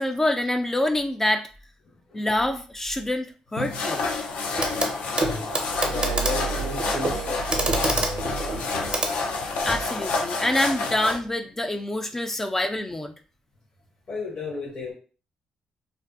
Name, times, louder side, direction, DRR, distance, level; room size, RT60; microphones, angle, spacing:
voice 1, 0.0-1.5 2.1-4.0 9.6-13.1, left 1 dB, 15° left, 6 dB, 0.3 m, -26 dB
voice 2, 1.8-2.3 4.7-9.1 14.1-14.9, left 3 dB, 50° left, -4 dB, 0.9 m, -35 dB
sound 1, 3.6-11.2, left 3 dB, 75° left, 0.5 m, -29 dB
Clock, 4.6-4.9 5.2-9.9 11.1-11.2, right 2 dB, 40° right, 0.6 m, -28 dB
Glass, 5.5-9.1 10.1-10.3, right 9 dB, 90° right, 0.3 m, -34 dB
2.5 x 2.2 x 2.4 m, 0.37 s
supercardioid pair, 70°, 3 cm